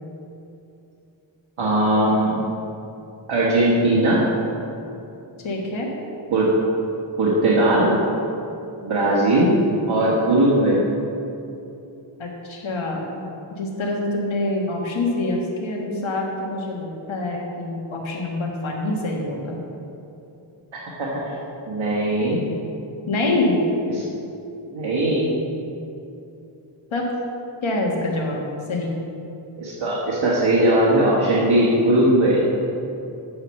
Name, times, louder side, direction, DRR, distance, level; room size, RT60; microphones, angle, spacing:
voice 1, 1.6-2.3 3.3-4.2 6.3-6.5 7.2-8.0 8.8-9.5 9.9-10.8 20.7-21.1 21.7-22.4 23.9-24.0 24.7-25.3 29.6-32.4, right 1 dB, 75° right, -7 dB, 1.6 m, -19 dB
voice 2, 5.4-5.9 12.2-13.3 13.6-19.6 23.1-23.6 26.9-27.1 27.6-28.4 28.7-28.9, left 2 dB, 75° left, -1 dB, 1.7 m, -25 dB
7.9 x 5.7 x 6.5 m, 2.8 s
wide cardioid pair, 120°, 48 cm